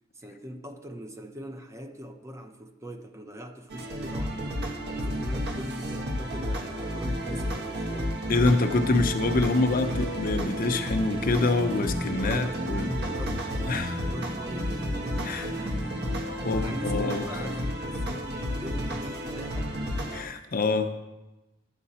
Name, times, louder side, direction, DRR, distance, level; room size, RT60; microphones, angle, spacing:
voice 1, 0.2-8.2 12.2-16.1 16.6-19.9, equal, 15° right, 5 dB, 0.7 m, -41 dB
sound 1, 3.7-20.2, equal, 55° right, 1.3 m, -31 dB
sound 2, 8.2-8.3 9.3-14.6, right 1 dB, 75° left, 1.0 m, -44 dB
voice 2, 8.3-12.9 13.7-14.0 15.2-15.5 16.4-17.4 20.1-20.9, left 3 dB, 45° left, 7 dB, 0.7 m, -26 dB
11.5 x 7.5 x 4.2 m, 1.0 s
head